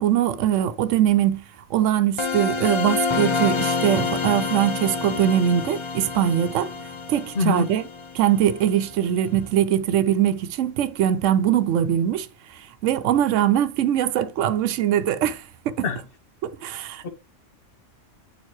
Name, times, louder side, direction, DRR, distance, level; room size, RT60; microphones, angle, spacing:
voice 1, 0.0-1.4 1.7-6.7 7.1-7.8 8.1-15.8 16.4-17.1, right 10 dB, 85° right, 0.9 m, -22 dB
sound 1, 2.2-8.8, left 4 dB, 35° left, 0.5 m, -28 dB
voice 2, 7.3-7.7 15.8-16.0 17.0-17.1, left 4 dB, 55° left, 0.9 m, -23 dB
9.3 x 4.5 x 3.1 m
omnidirectional pair, 1.3 m